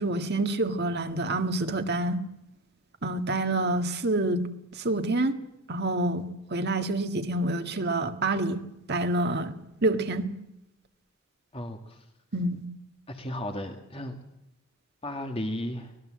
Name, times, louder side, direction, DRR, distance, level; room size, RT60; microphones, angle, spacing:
voice 1, 0.0-2.2 3.0-4.5 4.8-5.3 5.7-8.6 8.9-10.3 12.3-12.7, right 2 dB, 50° right, 1.8 m, -27 dB
voice 2, 11.5-12.0 13.1-14.2 15.0-15.9, left 1 dB, 25° left, 2.0 m, -34 dB
24.5 x 19.5 x 7.7 m
head